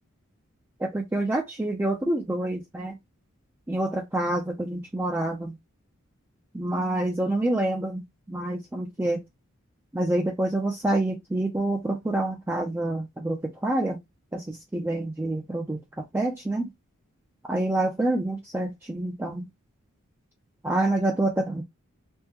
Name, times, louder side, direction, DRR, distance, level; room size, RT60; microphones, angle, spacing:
voice 1, 0.8-3.0 3.7-5.5 6.5-9.2 9.9-14.0 14.3-15.8 16.1-16.7 17.5-19.4 20.6-21.6, right 1 dB, 10° right, 0.4 m, -27 dB
3.5 x 2.0 x 2.8 m
head